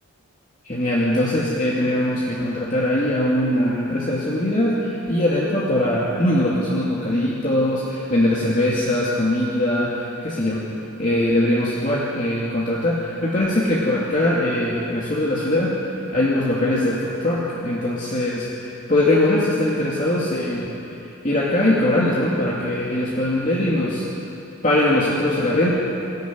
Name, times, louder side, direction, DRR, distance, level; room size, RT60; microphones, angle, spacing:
voice 1, 0.6-10.6 11.0-15.8 16.1-20.8 21.2-24.1 24.6-25.7, left 1 dB, 35° left, -6 dB, 2.6 m, -21 dB
22.0 x 14.5 x 9.6 m, 2.8 s
head